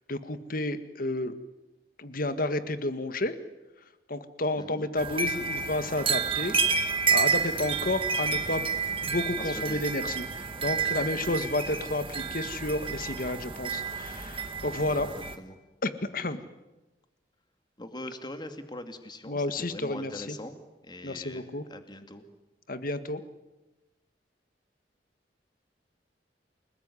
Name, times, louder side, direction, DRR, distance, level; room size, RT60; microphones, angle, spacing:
voice 1, 0.1-1.3 2.0-3.3 4.1-6.8 7.1-8.7 9.1-15.1 15.8-16.4 19.3-20.4 21.0-21.7 22.7-23.2, left 2 dB, 55° left, 11 dB, 1.8 m, -31 dB
voice 2, 4.5-4.9 9.4-10.0 10.5-11.3 14.9-15.6 17.8-20.6 20.8-22.2, left 1 dB, 25° left, 8 dB, 2.5 m, -42 dB
sound 1, 5.0-15.3, right 5 dB, 30° right, 2.0 m, -30 dB
29.0 x 19.5 x 9.9 m, 1.1 s
head